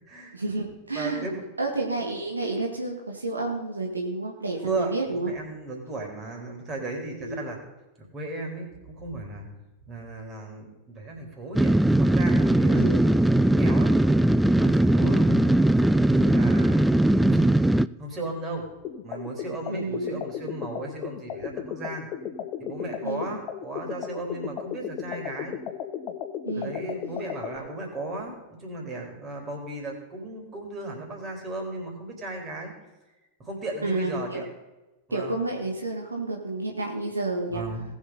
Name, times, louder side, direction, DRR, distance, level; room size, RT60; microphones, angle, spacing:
voice 1, 0.3-1.3 1.6-5.3 7.2-7.4 12.8-13.1 15.0-15.2 19.7-20.2 23.0-23.4 26.4-26.7 33.8-34.4 35.1-37.6, right 2 dB, 80° right, 1 dB, 1.7 m, -30 dB
voice 2, 0.9-1.4 4.6-7.6 8.1-9.5 9.9-13.0 13.3-13.9 14.5-15.6 16.1-17.5 18.0-18.7 19.0-22.1 22.6-25.6 26.5-32.7 33.4-34.5 35.1-35.4 37.5-37.8, right 2 dB, 25° right, 1 dB, 3.9 m, -35 dB
sound 1, 11.6-17.9, right 1 dB, 5° right, 0.3 m, -20 dB
sound 2, 18.8-27.6, left 8 dB, 40° left, 1.1 m, -35 dB
18.5 x 7.2 x 4.1 m, 1.0 s
figure-of-eight pair, 90°, 0 cm